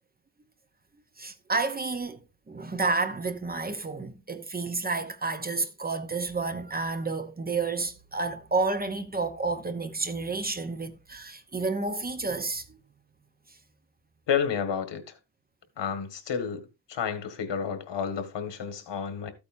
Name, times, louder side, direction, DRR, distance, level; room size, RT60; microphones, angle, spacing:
voice 1, 1.2-2.2 2.5-12.8, right 3 dB, 20° right, 0.7 m, -30 dB
voice 2, 14.3-15.0 15.8-19.3, left 7 dB, 80° left, 1.8 m, -30 dB
13.5 x 8.5 x 2.6 m
wide cardioid pair, 165°, 42 cm